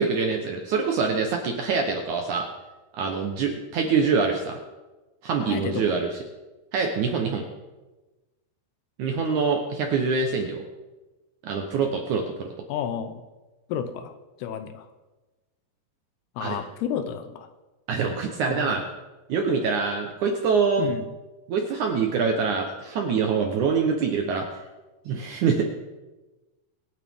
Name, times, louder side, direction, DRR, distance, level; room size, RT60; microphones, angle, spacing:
voice 1, 0.0-2.5 2.9-4.6 5.2-6.2 6.7-7.4 9.0-10.6 11.4-12.5 16.4-16.6 17.9-18.8 19.3-20.8 21.5-24.5 25.1-25.6, right 5 dB, 75° right, 3 dB, 1.8 m, -25 dB
voice 2, 5.5-5.8 12.7-13.2 13.7-14.1 14.4-14.8 16.4-17.5 18.5-18.7 20.8-21.0, left 8 dB, 80° left, 9 dB, 2.7 m, -31 dB
23.5 x 9.0 x 3.6 m, 1.1 s
omnidirectional pair, 4.8 m